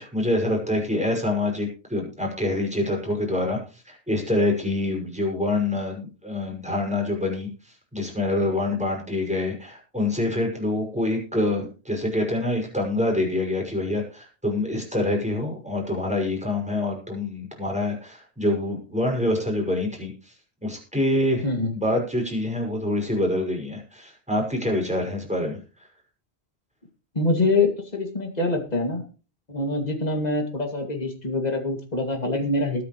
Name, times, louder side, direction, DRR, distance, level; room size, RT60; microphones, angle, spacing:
voice 1, 0.0-20.3 20.6-21.4 21.7-25.6, left 1 dB, 5° right, 0 dB, 6.1 m, -26 dB
voice 2, 27.1-29.0 29.5-32.8, left 2 dB, 40° left, 4 dB, 2.6 m, -25 dB
21.0 x 9.4 x 3.2 m, 0.35 s
omnidirectional pair, 1.1 m